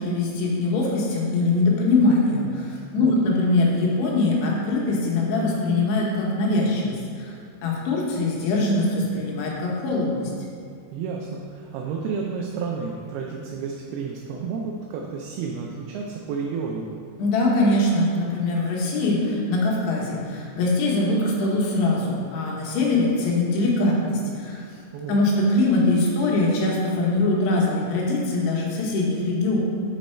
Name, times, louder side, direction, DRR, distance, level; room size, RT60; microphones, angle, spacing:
voice 1, 0.0-2.7 2.9-7.3 7.6-10.3 17.2-24.7 25.1-29.6, left 2 dB, 80° left, -3 dB, 3.1 m, -22 dB
voice 2, 10.9-16.9 24.9-25.2, right 5 dB, 85° right, 0 dB, 2.3 m, -31 dB
6.4 x 5.2 x 4.3 m, 2.3 s
omnidirectional pair, 4.9 m